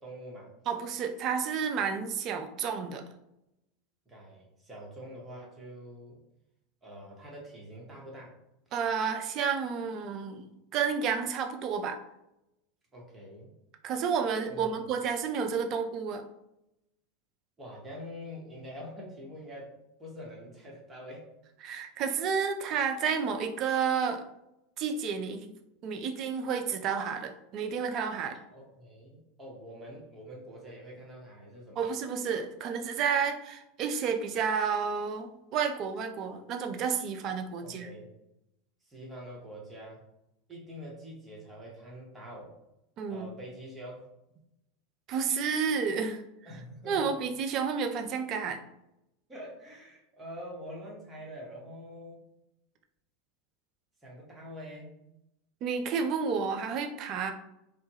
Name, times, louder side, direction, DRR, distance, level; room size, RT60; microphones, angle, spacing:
voice 1, 0.0-0.5 4.1-6.2 6.8-8.3 12.9-13.5 14.5-14.8 17.6-19.7 20.0-21.3 28.5-31.8 37.6-38.1 38.9-40.0 40.5-42.5 43.1-44.1 46.4-47.1 49.3-52.2 54.0-55.0, equal, 15° right, -3 dB, 0.9 m, -45 dB
voice 2, 0.7-3.0 8.7-10.4 10.7-12.0 13.8-16.2 21.6-24.2 24.8-25.5 25.8-28.4 31.8-37.9 43.0-43.3 45.1-46.2 46.9-48.6 55.6-57.3, right 6 dB, 40° right, 5 dB, 0.3 m, -31 dB
2.1 x 2.1 x 3.1 m, 0.86 s
figure-of-eight pair, 80°, 0 cm